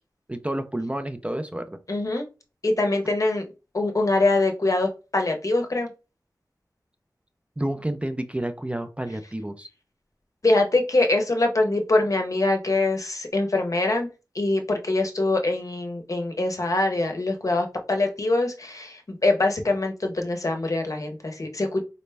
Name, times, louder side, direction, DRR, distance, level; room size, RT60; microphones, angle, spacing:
voice 1, 0.3-1.8 7.6-9.7, right 1 dB, 15° right, 8 dB, 0.4 m, -30 dB
voice 2, 1.9-2.3 2.6-3.5 3.7-5.9 10.4-14.1 14.3-21.8, left 2 dB, 50° left, 4 dB, 0.7 m, -23 dB
3.9 x 2.1 x 3.3 m, 0.30 s
wide cardioid pair, 75°, 7 cm